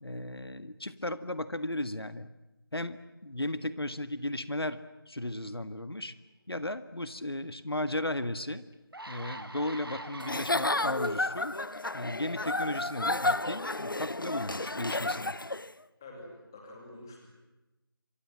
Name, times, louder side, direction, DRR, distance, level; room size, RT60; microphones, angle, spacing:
voice 1, 0.0-2.3 2.7-4.8 5.1-6.1 6.5-8.6 9.1-11.6 11.9-15.4, left 1 dB, 80° left, 12 dB, 1.8 m, -35 dB
sound 1, 8.2-8.3 8.7-11.1 11.8-12.0, right 1 dB, 70° right, 3.2 m, -44 dB
Giggle / Chuckle chortle, 10.2-15.7, left 2 dB, 60° left, 1.0 m, -31 dB
voice 2, 16.0-17.3, left 1 dB, 10° left, 0 dB, 2.6 m, -47 dB
27.5 x 25.0 x 7.6 m, 1.0 s
figure-of-eight pair, 175°, 13 cm